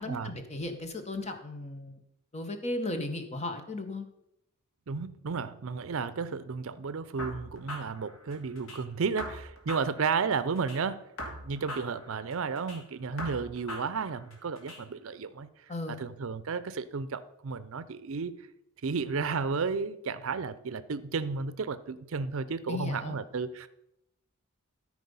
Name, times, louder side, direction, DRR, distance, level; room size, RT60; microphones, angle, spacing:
voice 1, 0.0-2.0 2.3-4.1 15.7-16.0 22.7-23.2, left 2 dB, 30° left, 6 dB, 1.0 m, -36 dB
voice 2, 4.9-11.0 11.3-15.5 15.9-18.4 18.8-23.7, right 5 dB, 65° right, 14 dB, 0.5 m, -33 dB
sound 1, 7.2-8.8 9.2-10.8 11.2-12.8 13.2-14.8, equal, 65° left, 2.3 m, -41 dB
13.5 x 4.9 x 5.4 m, 0.81 s
head